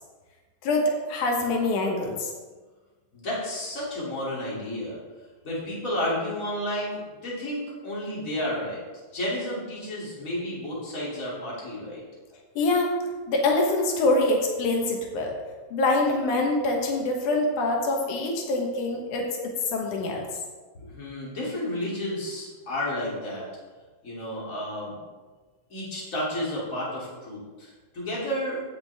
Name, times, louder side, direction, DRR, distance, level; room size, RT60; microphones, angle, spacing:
voice 1, 0.6-2.3 12.6-12.9 13.3-15.4 15.7-20.3, left 2 dB, 85° left, 1 dB, 2.6 m, -25 dB
voice 2, 3.1-5.0 5.4-8.8 9.1-12.0 20.7-23.4 24.0-25.0 25.7-28.6, left 1 dB, 25° left, -6 dB, 3.0 m, -31 dB
16.0 x 6.0 x 3.4 m, 1.3 s
omnidirectional pair, 3.4 m